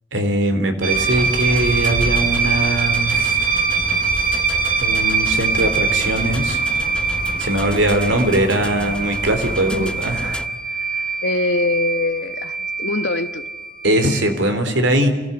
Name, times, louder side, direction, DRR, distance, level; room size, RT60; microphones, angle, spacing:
voice 1, 0.1-3.4 4.8-6.6 7.4-10.4 13.8-15.1, right 1 dB, 85° right, 7 dB, 3.9 m, -20 dB
sound 1, 0.8-14.5, right 5 dB, 45° right, 2.1 m, -23 dB
sound 2, 0.9-10.5, equal, 5° left, 0.8 m, -30 dB
voice 2, 11.2-13.4, left 3 dB, 75° left, 12 dB, 1.3 m, -23 dB
28.5 x 18.0 x 8.1 m, 1.2 s
head